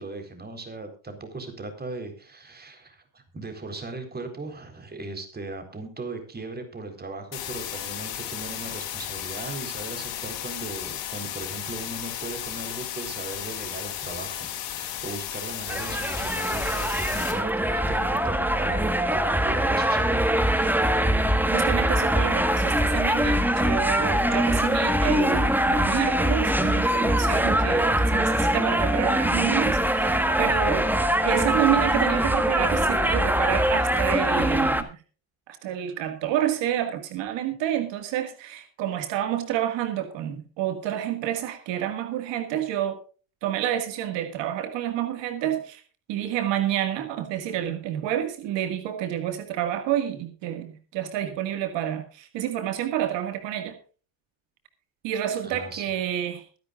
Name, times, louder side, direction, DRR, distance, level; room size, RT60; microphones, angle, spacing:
voice 1, 0.0-20.9 55.4-55.8, right 3 dB, 20° right, 6 dB, 4.0 m, -38 dB
sound 1, 7.3-17.3, left 11 dB, 85° left, 5.4 m, -34 dB
sound 2, 15.7-34.8, right 1 dB, 5° right, 1.4 m, -23 dB
voice 2, 21.5-30.9 31.2-35.0 35.5-43.0 43.4-45.8 46.1-53.8 55.0-56.5, right 11 dB, 80° right, 7 dB, 2.0 m, -29 dB
22.5 x 10.5 x 2.5 m, 0.38 s
cardioid pair, 115°, 43 cm